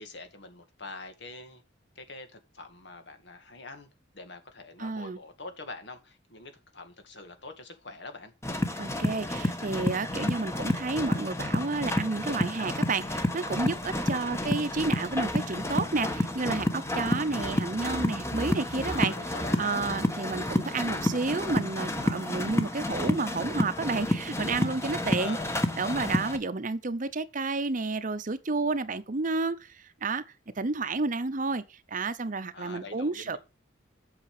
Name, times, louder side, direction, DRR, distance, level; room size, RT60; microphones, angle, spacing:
voice 1, 0.0-1.6 2.0-3.9 4.1-8.3 14.1-14.4 18.8-19.8 25.1-25.5 32.5-33.4, left 3 dB, 65° left, 2.1 m, -44 dB
voice 2, 4.8-5.2 8.8-19.1 19.6-25.4 25.8-30.2 30.6-33.4, right 3 dB, 45° right, 0.8 m, -31 dB
sound 1, 8.4-26.4, left 1 dB, 15° left, 1.2 m, -30 dB
8.5 x 6.6 x 4.8 m
head